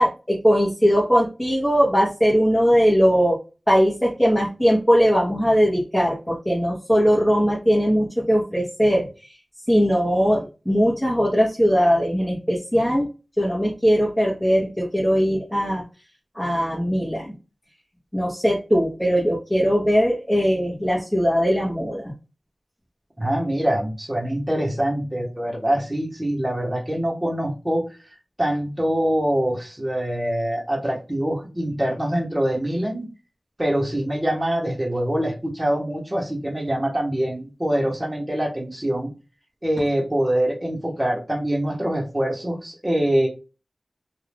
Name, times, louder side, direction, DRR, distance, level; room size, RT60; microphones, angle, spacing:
voice 1, 0.0-3.4 3.7-9.0 9.7-13.0 13.4-15.8 16.3-17.3 18.1-22.1, equal, 10° left, -5 dB, 1.2 m, -20 dB
voice 2, 23.2-27.8 28.4-33.1 33.6-39.1 39.6-43.3, right 1 dB, 20° right, -2 dB, 1.1 m, -24 dB
2.7 x 2.4 x 3.3 m, 0.31 s
wide cardioid pair, 55°, 0 cm